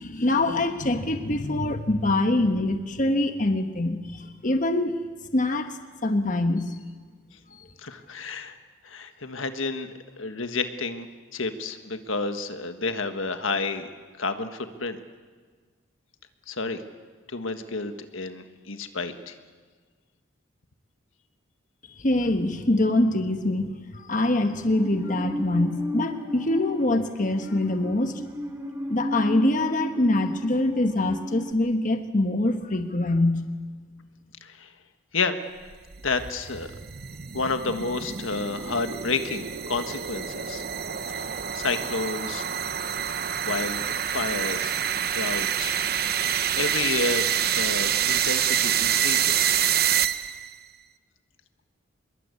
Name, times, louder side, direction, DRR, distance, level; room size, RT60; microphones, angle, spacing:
voice 1, 0.0-5.0 5.3-6.8 7.5-7.7 21.9-28.2 28.9-33.5, left 2 dB, 40° left, 7 dB, 1.2 m, -24 dB
voice 2, 7.8-8.6 8.8-9.9 10.2-11.1 11.3-13.9 14.2-15.0 16.5-16.8 17.3-19.4 34.4-34.7 35.1-35.4 36.0-36.7 37.3-40.6 41.1-42.4 42.8-42.9 43.4-44.8 45.1-45.8 46.1-49.6, left 3 dB, 80° left, 8 dB, 1.6 m, -30 dB
Musical instrument, 24.7-31.5, equal, 15° right, 1.9 m, -34 dB
sound 1, 35.7-50.5, right 9 dB, 50° right, 0.9 m, -27 dB
25.5 x 22.0 x 8.4 m, 1.5 s
head